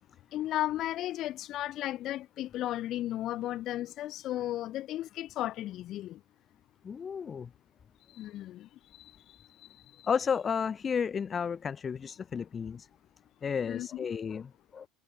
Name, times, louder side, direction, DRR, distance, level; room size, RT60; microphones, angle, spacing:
voice 1, 0.3-6.2 8.1-8.7 9.0-9.1 13.7-14.1, left 14 dB, 45° left, 4.4 m, -34 dB
voice 2, 6.8-7.5 10.1-12.9 13.4-14.9, left 6 dB, 25° left, 0.9 m, -32 dB
figure-of-eight pair, 70°, 0 cm